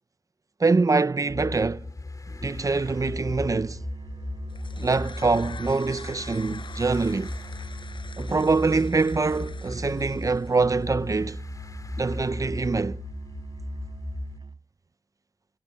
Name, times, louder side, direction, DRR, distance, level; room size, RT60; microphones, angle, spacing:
voice 1, 0.6-1.9 2.3-3.8 4.8-7.3 8.2-11.4 12.0-13.0, right 3 dB, 40° right, 0.6 m, -24 dB
sound 1, 1.3-14.4, left 3 dB, 45° left, 3.3 m, -37 dB
Musical instrument, 2.8-14.7, right 4 dB, 65° right, 7.1 m, -40 dB
sound 2, 4.5-10.8, left 5 dB, 75° left, 5.2 m, -46 dB
wide cardioid pair, 70°, 8 cm